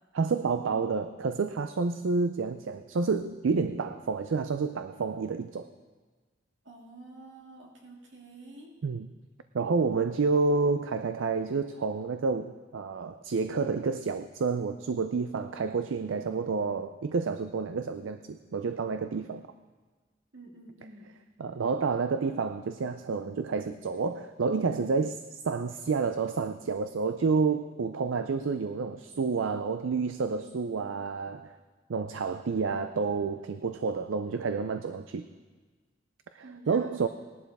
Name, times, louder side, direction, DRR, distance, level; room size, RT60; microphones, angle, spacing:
voice 1, 0.1-5.7 8.8-9.1 9.5-19.4 21.4-31.6 31.9-35.3 36.3-37.1, right 4 dB, 85° right, 10 dB, 0.5 m, -29 dB
voice 2, 6.6-8.7 20.3-21.1 36.4-37.0, right 2 dB, 70° right, -1 dB, 2.3 m, -49 dB
19.0 x 11.5 x 3.5 m, 1.4 s
head